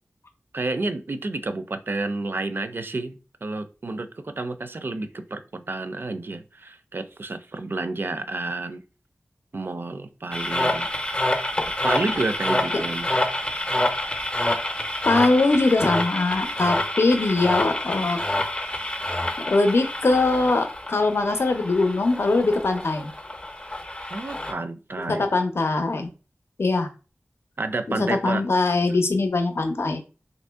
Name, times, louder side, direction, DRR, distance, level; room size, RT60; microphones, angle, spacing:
voice 1, 0.5-8.8 9.5-10.9 11.8-13.1 24.1-25.3 27.6-28.5, right 2 dB, 50° right, 0.4 m, -30 dB
sound 1, 10.3-24.5, left 1 dB, 20° left, 0.5 m, -27 dB
voice 2, 15.0-18.2 19.5-23.1 25.1-26.1 26.6-26.9 27.9-30.0, left 3 dB, 65° left, 0.6 m, -22 dB
2.9 x 2.6 x 3.4 m
wide cardioid pair, 55°, 5 cm